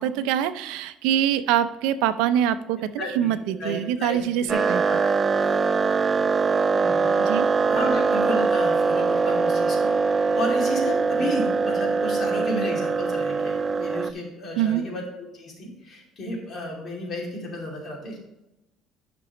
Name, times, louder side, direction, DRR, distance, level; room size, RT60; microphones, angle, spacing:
voice 1, 0.0-4.8 7.2-7.5 14.6-14.9, right 10 dB, 90° right, 11 dB, 0.5 m, -24 dB
voice 2, 3.0-3.3 3.6-5.1 5.4-5.6 6.7-7.2 7.7-15.0 15.3-18.2, left 1 dB, 35° left, -1 dB, 2.5 m, -32 dB
sound 1, 4.5-14.1, right 4 dB, 20° right, 0.3 m, -22 dB
10.5 x 6.0 x 3.0 m, 0.93 s
cardioid pair, 150°, 0 cm